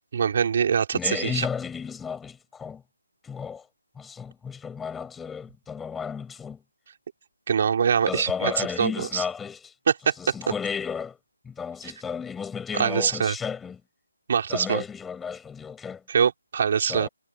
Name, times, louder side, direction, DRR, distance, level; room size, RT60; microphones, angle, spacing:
voice 1, 0.1-1.5 7.5-9.2 9.9-10.1 12.7-13.3 14.3-14.8 16.1-17.1, right 7 dB, 40° right, 4.9 m, -24 dB
voice 2, 0.9-2.8 3.2-3.7 3.9-6.6 8.0-9.7 10.2-11.2 11.4-13.8 14.5-16.0 16.8-17.1, left 6 dB, 5° left, 7.7 m, -33 dB
figure-of-eight pair, 165°, 0 cm